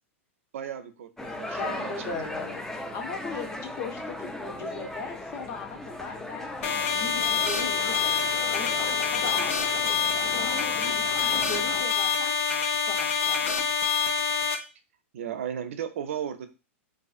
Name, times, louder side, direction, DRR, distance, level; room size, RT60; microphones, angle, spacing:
voice 1, 0.5-1.9 15.1-16.5, right 9 dB, 70° right, 9 dB, 0.4 m, -35 dB
sound 1, 1.2-11.8, left 1 dB, 5° left, 0.3 m, -38 dB
voice 2, 1.5-2.6 2.9-9.8 10.2-12.4 12.9-13.7, left 4 dB, 40° left, 3 dB, 0.7 m, -38 dB
sound 2, 6.6-14.5, left 6 dB, 75° left, 0.5 m, -26 dB
2.4 x 2.4 x 2.4 m, 0.30 s
hypercardioid pair, 110°, 7 cm